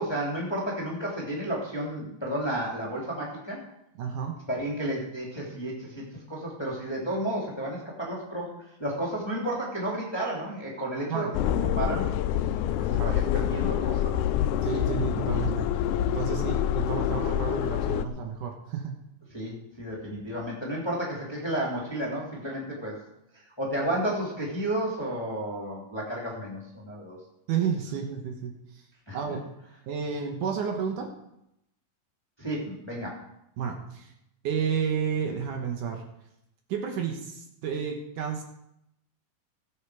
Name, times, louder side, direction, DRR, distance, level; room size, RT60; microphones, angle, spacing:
voice 1, 0.0-3.6 4.5-11.3 11.8-12.1 12.8-14.1 19.3-23.0 23.6-27.2 29.1-29.2 32.4-33.2, right 1 dB, 10° left, -4 dB, 2.1 m, -32 dB
voice 2, 4.0-4.4 11.1-11.3 12.9-13.2 14.6-15.7 16.1-19.0 27.5-28.8 29.1-29.4 29.9-31.1 33.6-34.1 34.4-36.0 36.7-38.4, right 7 dB, 65° right, 3 dB, 2.6 m, -31 dB
sound 1, 11.3-18.1, left 10 dB, 85° left, 1.8 m, -26 dB
17.5 x 7.7 x 4.8 m, 0.81 s
omnidirectional pair, 4.1 m